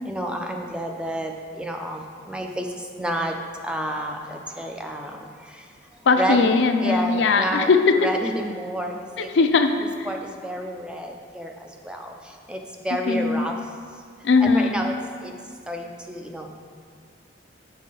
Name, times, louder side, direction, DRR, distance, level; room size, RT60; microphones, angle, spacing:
voice 1, 0.0-3.4 3.6-5.7 6.1-6.5 6.8-7.7 8.0-9.3 10.1-13.6 14.4-15.0 15.2-15.3 15.7-16.6, right 1 dB, 5° right, 3 dB, 0.4 m, -30 dB
voice 2, 6.1-8.1 9.2-10.1 13.1-13.5 14.2-14.8, left 4 dB, 70° left, 7 dB, 0.4 m, -19 dB
7.3 x 5.6 x 3.8 m, 2.1 s
head